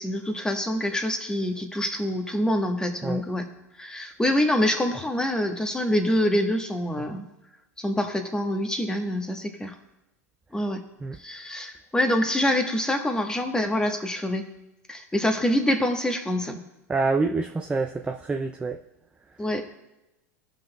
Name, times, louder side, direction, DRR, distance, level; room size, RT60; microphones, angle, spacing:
voice 1, 0.0-3.5 3.8-7.3 7.8-9.7 10.5-10.8 11.2-14.4 14.9-16.6 19.4-19.6, left 1 dB, 10° left, 5 dB, 1.1 m, -25 dB
voice 2, 16.9-18.8, right 3 dB, 10° right, 3 dB, 0.4 m, -26 dB
17.0 x 5.9 x 2.2 m, 0.99 s
hypercardioid pair, 95°, 9 cm